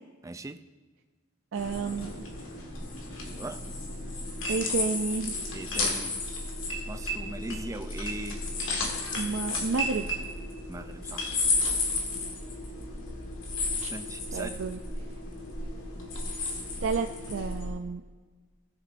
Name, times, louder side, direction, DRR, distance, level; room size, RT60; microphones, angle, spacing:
voice 1, 0.2-0.6 3.3-3.6 5.5-6.2 6.9-8.4 10.7-11.4 13.9-14.6, right 2 dB, 15° right, 9 dB, 0.4 m, -39 dB
sound 1, 1.5-17.7, left 2 dB, 80° left, 1.8 m, -33 dB
voice 2, 1.5-2.3 4.5-5.4 9.2-10.1 13.8-13.9 14.3-14.8 16.8-18.0, right 4 dB, 80° right, 4 dB, 0.5 m, -31 dB
17.0 x 7.1 x 2.6 m, 1.4 s
head